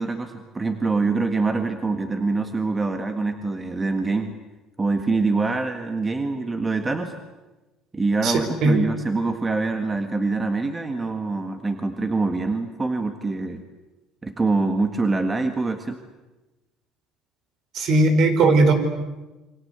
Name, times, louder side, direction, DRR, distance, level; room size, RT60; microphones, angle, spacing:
voice 1, 0.0-4.3 4.8-7.1 7.9-13.6 14.2-16.0, right 3 dB, 15° right, 7 dB, 1.7 m, -25 dB
voice 2, 8.2-8.8 17.7-18.7, right 2 dB, 50° right, 8 dB, 4.8 m, -18 dB
28.5 x 24.5 x 8.2 m, 1.1 s
cardioid pair, 140°, 0 cm